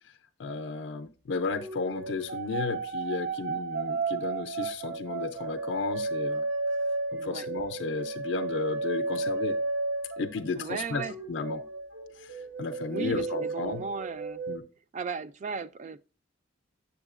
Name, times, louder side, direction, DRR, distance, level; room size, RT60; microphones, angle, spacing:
voice 1, 0.4-6.4 7.1-9.6 10.2-11.6 12.2-13.8 14.5-14.6, left 4 dB, 65° left, 0.4 m, -33 dB
sound 1, 1.5-10.6 10.9-14.6, right 3 dB, 65° right, 1.1 m, -33 dB
voice 2, 7.2-7.5 10.6-11.1 12.9-14.4 14.9-16.0, right 5 dB, 40° right, 0.3 m, -36 dB
7.3 x 7.1 x 2.4 m
head